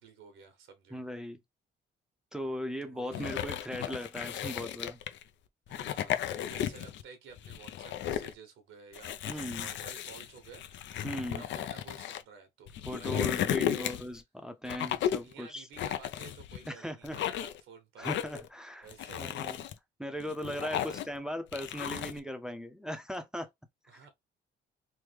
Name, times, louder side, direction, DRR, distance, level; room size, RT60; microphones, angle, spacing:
voice 1, 0.0-1.0 2.8-3.4 5.7-12.7 13.0-14.0 15.1-18.1 18.8-19.6 20.5-21.1 23.9-24.1, right 5 dB, 80° right, 1.0 m, -52 dB
voice 2, 0.9-1.4 2.3-5.0 9.3-9.7 11.0-11.4 12.9-15.7 16.7-17.2 18.0-18.9 19.2-19.6 20.0-23.5 23.9-24.1, equal, 5° right, 0.5 m, -38 dB
sound 1, 3.1-5.2 5.7-7.0 7.4-8.3 8.9-12.2 12.7-14.2 14.7-15.3 15.8-16.7 17.0-17.6 18.0-18.5 18.9-19.7 20.2-21.2 21.5-22.2, left 10 dB, 70° left, 0.4 m, -34 dB
3.1 x 2.1 x 3.3 m
cardioid pair, 90°, 20 cm